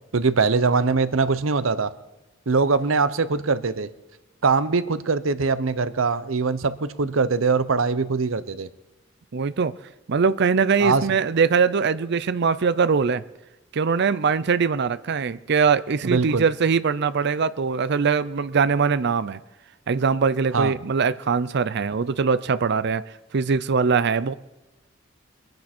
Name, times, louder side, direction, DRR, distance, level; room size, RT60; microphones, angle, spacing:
voice 1, 0.1-1.9 2.5-3.9 4.4-8.7 10.8-11.1 16.0-16.4 20.5-20.7, right 4 dB, 90° right, 14 dB, 0.8 m, -22 dB
voice 2, 9.3-9.7 10.1-13.2 13.7-19.4 19.9-23.0 23.3-24.3, right 5 dB, 60° right, 15 dB, 0.5 m, -22 dB
23.0 x 10.5 x 4.4 m, 1.1 s
head